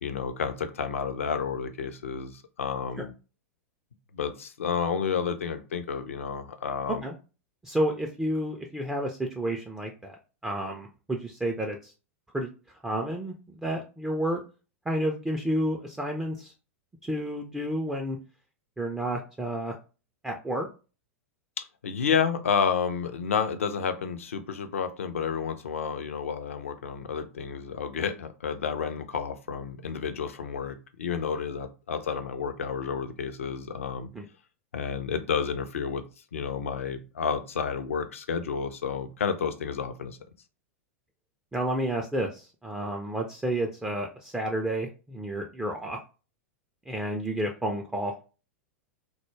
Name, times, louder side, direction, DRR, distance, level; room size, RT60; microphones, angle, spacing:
voice 1, 0.0-3.1 4.1-7.0 21.8-34.1 34.7-36.0 36.3-40.2, left 6 dB, 70° left, 8 dB, 0.4 m, -30 dB
voice 2, 7.6-10.2 10.4-11.9 12.3-12.5 12.8-14.4 14.9-16.5 17.0-18.2 18.8-19.7 20.2-20.7 34.1-34.3 41.5-46.0 46.9-48.2, right 1 dB, 10° right, 1 dB, 0.3 m, -30 dB
2.2 x 2.0 x 3.1 m, 0.33 s
figure-of-eight pair, 90°, 8 cm